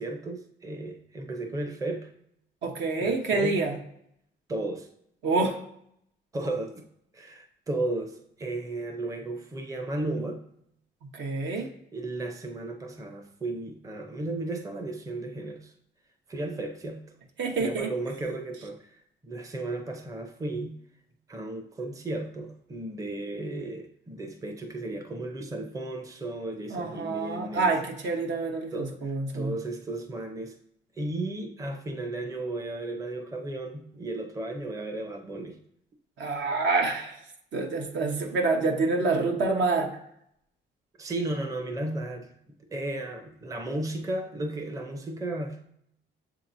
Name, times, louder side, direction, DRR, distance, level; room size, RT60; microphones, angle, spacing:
voice 1, 0.0-2.1 3.0-3.6 4.5-4.9 6.3-6.9 7.1-10.4 11.5-15.7 16.3-17.0 17.6-18.9 19.2-20.8 21.3-27.8 28.7-30.6 31.0-35.6 41.0-42.3 42.7-45.6, right 2 dB, 15° right, 4 dB, 0.6 m, -34 dB
voice 2, 2.6-3.8 5.2-5.6 11.1-11.7 17.4-17.9 26.7-29.5 36.2-37.2 37.5-39.9, right 3 dB, 70° right, 2 dB, 0.9 m, -27 dB
7.0 x 2.8 x 2.6 m, 0.72 s
cardioid pair, 90°, 20 cm